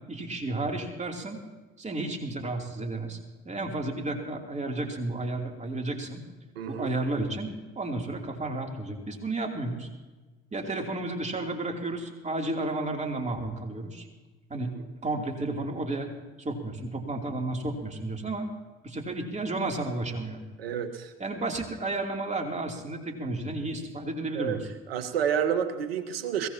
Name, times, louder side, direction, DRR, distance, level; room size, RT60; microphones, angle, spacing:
voice 1, 0.1-1.4 1.8-3.2 3.4-6.2 6.7-7.5 7.7-9.9 10.5-14.1 14.5-14.7 15.0-16.1 16.4-18.5 18.8-20.4 21.2-24.6, right 2 dB, 25° right, 2 dB, 3.0 m, -32 dB
voice 2, 6.5-6.9 20.6-21.1 24.3-24.6 24.9-26.5, right 8 dB, 75° right, 9 dB, 1.3 m, -29 dB
22.0 x 17.0 x 2.9 m, 1.2 s
figure-of-eight pair, 60°, 30 cm